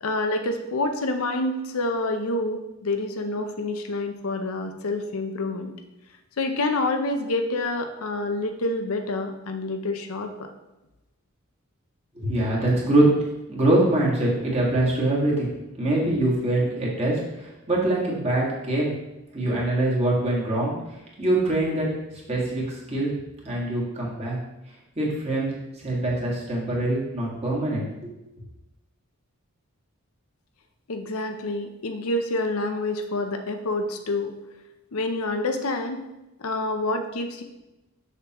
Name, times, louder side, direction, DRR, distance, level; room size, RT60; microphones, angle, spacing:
voice 1, 0.0-5.7 6.4-10.5 30.9-34.4 34.9-36.1 36.4-37.4, left 2 dB, 75° left, 6 dB, 0.7 m, -27 dB
voice 2, 12.2-13.1 13.5-15.5 15.8-18.9 19.3-20.7 21.2-21.9 22.3-23.1 23.4-24.4 25.0-28.1, right 1 dB, 30° right, -5 dB, 1.8 m, -24 dB
6.6 x 6.2 x 3.0 m, 0.97 s
head